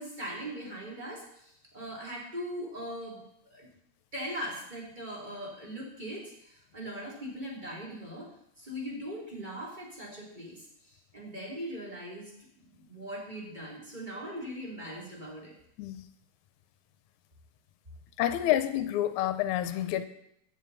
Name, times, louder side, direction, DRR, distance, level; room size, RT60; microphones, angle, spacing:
voice 1, 0.0-3.7 4.1-8.3 8.6-12.3 12.7-15.5, equal, 15° right, -4 dB, 3.0 m, -40 dB
voice 2, 18.2-20.1, left 12 dB, 85° left, 11 dB, 2.0 m, -28 dB
14.0 x 8.8 x 4.1 m, 0.74 s
omnidirectional pair, 3.5 m